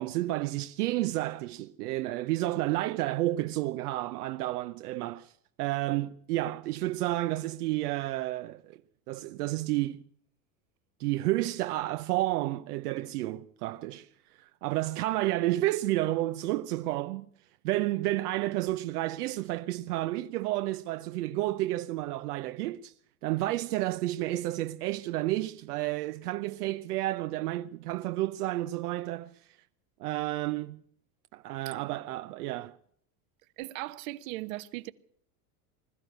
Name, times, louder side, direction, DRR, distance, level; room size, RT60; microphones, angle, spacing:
voice 1, 0.0-5.3 5.6-8.8 9.1-10.0 11.0-17.3 17.6-22.9 23.2-29.5 30.0-30.8 31.3-32.7, right 16 dB, 80° right, 0.8 m, -31 dB
voice 2, 33.6-34.9, right 18 dB, 60° right, 1.1 m, -38 dB
21.0 x 13.5 x 9.2 m
supercardioid pair, 155°, 45 cm